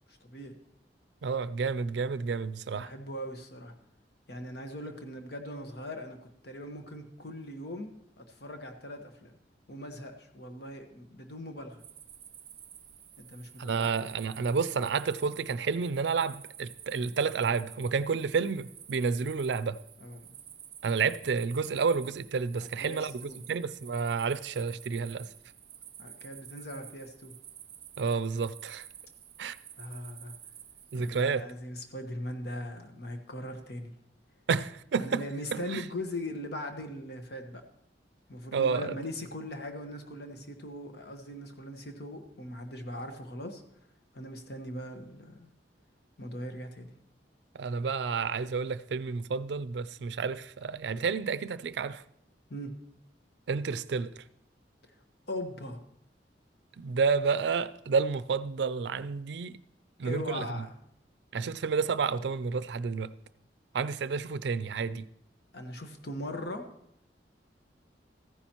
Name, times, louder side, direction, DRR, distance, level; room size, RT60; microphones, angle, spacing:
voice 1, 0.1-0.6 2.7-3.7 4.3-9.3 9.7-11.8 13.2-13.9 20.0-20.4 22.8-23.4 26.0-27.3 29.8-30.3 31.0-33.9 35.0-37.6 38.3-43.6 44.1-45.5 46.2-46.9 52.5-52.7 55.3-55.8 60.0-60.8 65.5-66.7, left 1 dB, 65° left, 1.2 m, -40 dB
voice 2, 1.2-2.9 13.6-19.8 20.8-25.3 28.0-28.9 29.4-29.6 30.9-31.5 34.5-35.2 35.5-35.8 38.5-39.0 47.5-52.0 53.5-54.1 56.8-59.6 60.0-60.7 61.3-63.1 63.7-65.1, right 5 dB, 75° right, 0.4 m, -30 dB
sound 1, 11.8-31.2, right 10 dB, 35° right, 0.7 m, -50 dB
14.5 x 9.9 x 3.0 m
head